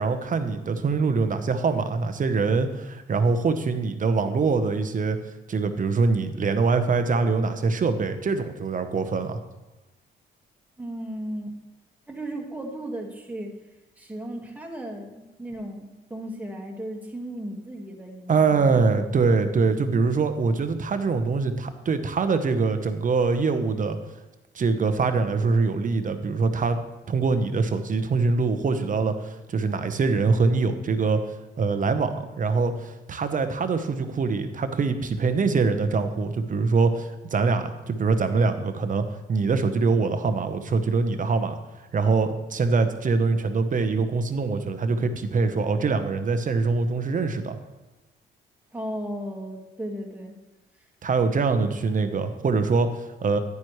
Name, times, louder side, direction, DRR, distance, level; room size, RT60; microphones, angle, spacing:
voice 1, 0.0-5.2 5.5-9.4 18.3-24.0 24.5-26.8 27.1-41.6 41.9-47.6 51.0-53.4, right 4 dB, 40° right, 9 dB, 0.9 m, -24 dB
voice 2, 10.8-11.6 12.1-13.6 14.0-18.8 48.7-50.3, right 1 dB, 10° right, 0 dB, 1.8 m, -35 dB
10.5 x 9.5 x 3.2 m, 1.1 s
cardioid pair, 90°, 20 cm